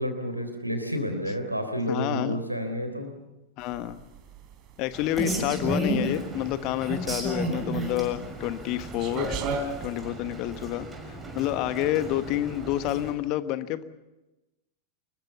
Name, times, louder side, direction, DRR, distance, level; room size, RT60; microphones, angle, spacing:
voice 1, 0.0-3.1, equal, 90° right, 7 dB, 3.6 m, -30 dB
voice 2, 1.9-2.4 3.6-4.0 4.8-9.3 9.8-10.9 11.3-13.8, left 14 dB, 40° left, 13 dB, 1.2 m, -29 dB
sound 1, 3.6-10.0, right 3 dB, 40° right, 3.4 m, -36 dB
Rain, 4.9-13.1, right 2 dB, 15° right, 6.4 m, -33 dB
25.5 x 21.5 x 7.1 m, 1.0 s
figure-of-eight pair, 90°, 0 cm